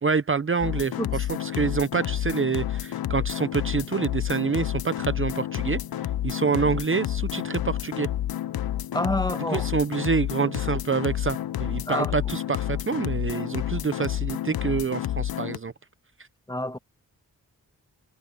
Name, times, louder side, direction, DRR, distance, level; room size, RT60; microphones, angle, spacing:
voice 1, 0.0-5.8 6.2-8.1 9.5-15.7, right 5 dB, 35° right, 0.7 m, -27 dB
sound 1, 0.6-15.6, left 12 dB, 75° left, 0.6 m, -30 dB
voice 2, 8.9-9.7 11.8-12.1 16.5-16.8, left 1 dB, 10° left, 1.4 m, -27 dB
cardioid pair, 60°, 36 cm